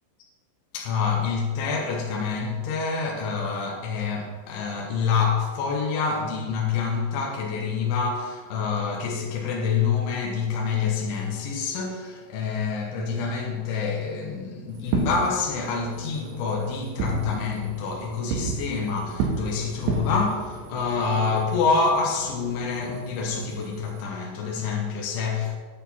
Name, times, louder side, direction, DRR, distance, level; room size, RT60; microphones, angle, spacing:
voice 1, 0.7-25.6, left 5 dB, 85° left, 3.4 m, -27 dB
Fireworks, 14.8-24.0, right 5 dB, 80° right, 3.5 m, -33 dB
9.0 x 8.3 x 4.3 m
omnidirectional pair, 5.3 m